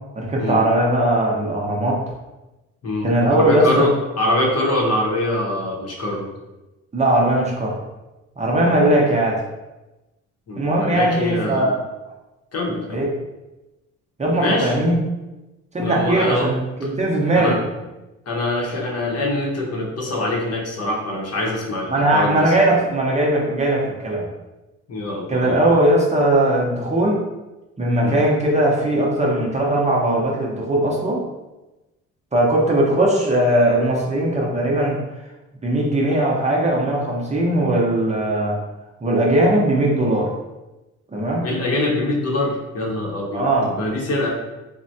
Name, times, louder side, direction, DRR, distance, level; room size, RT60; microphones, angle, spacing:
voice 1, 0.1-2.0 3.0-3.9 6.9-7.8 8.4-9.4 10.6-11.8 12.9-13.1 14.2-15.0 15.7-17.6 21.9-24.3 25.3-27.2 27.8-31.2 32.3-35.0 35.6-38.6 39.0-40.3 41.1-41.5 43.3-43.7, right 1 dB, 25° right, -3 dB, 0.6 m, -19 dB
voice 2, 2.8-6.3 8.6-8.8 10.5-11.7 12.5-13.0 14.4-14.7 15.8-16.5 17.3-17.6 18.3-22.5 24.9-25.8 28.0-28.3 41.4-44.3, left 1 dB, 55° left, -2 dB, 0.8 m, -24 dB
3.3 x 2.1 x 2.6 m, 1.0 s
cardioid pair, 90°, 30 cm